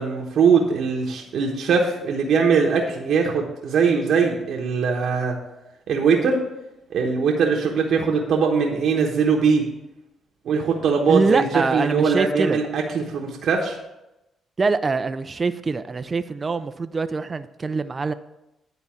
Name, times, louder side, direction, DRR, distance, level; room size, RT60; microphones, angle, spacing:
voice 1, 0.0-5.4 5.9-6.4 6.9-9.6 10.4-13.8, right 5 dB, 70° right, -1 dB, 1.1 m, -21 dB
voice 2, 11.1-12.6 14.6-18.1, right 4 dB, 30° right, 11 dB, 0.4 m, -24 dB
9.6 x 4.0 x 7.0 m, 0.92 s
cardioid pair, 90°, 0 cm